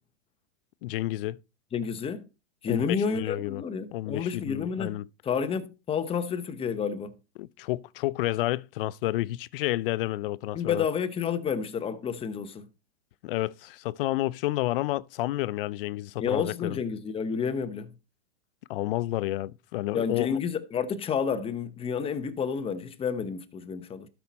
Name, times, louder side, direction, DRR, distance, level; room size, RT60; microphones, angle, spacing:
voice 1, 0.8-1.4 2.7-3.6 3.9-5.1 7.4-10.9 13.2-16.8 18.7-20.4, left 16 dB, 50° left, 0.5 m, -30 dB
voice 2, 1.7-2.3 2.6-5.0 5.2-7.2 10.5-12.7 16.2-17.9 19.9-24.1, left 6 dB, 15° left, 0.9 m, -30 dB
12.5 x 5.8 x 4.1 m
hypercardioid pair, 125°, 35 cm